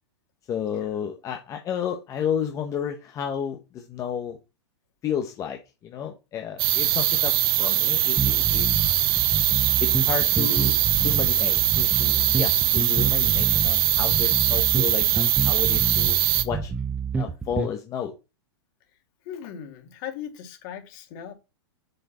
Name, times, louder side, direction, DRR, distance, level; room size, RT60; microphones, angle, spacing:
voice 1, 0.5-4.4 5.0-9.0 9.8-16.2 16.4-16.7 17.2-18.1, left 8 dB, 25° left, 4 dB, 0.9 m, -32 dB
sound 1, 6.6-16.4, right 13 dB, 60° right, 1.0 m, -22 dB
voice 2, 7.8-8.1 10.3-10.6 19.3-21.3, left 9 dB, 45° left, 4 dB, 2.6 m, -39 dB
sound 2, 8.2-17.7, right 4 dB, 10° right, 0.6 m, -29 dB
6.8 x 6.5 x 4.2 m, 0.28 s
supercardioid pair, 150°, 14 cm